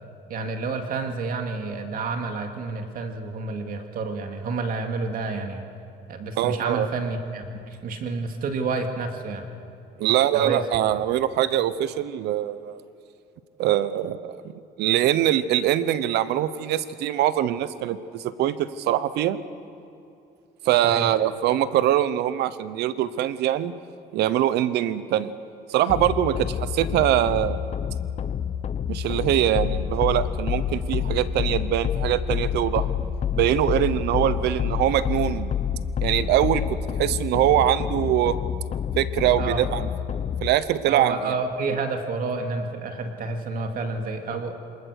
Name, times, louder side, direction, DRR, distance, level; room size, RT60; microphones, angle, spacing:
voice 1, 0.3-5.6 6.1-9.5 10.3-10.6 20.8-21.1 39.4-39.6 40.9-44.5, right 4 dB, 55° right, 5 dB, 2.3 m, -29 dB
voice 2, 6.4-6.9 10.0-12.8 13.6-14.4 14.8-19.4 20.6-23.7 24.1-25.3 25.7-27.6 28.9-32.9 33.3-35.5 36.0-38.4 39.0-39.9 40.4-41.3, right 12 dB, 80° right, 15 dB, 0.9 m, -23 dB
sound 1, 25.9-40.5, left 8 dB, 40° left, 0.7 m, -28 dB
26.0 x 20.0 x 6.6 m, 2.6 s
cardioid pair, 110°, 17 cm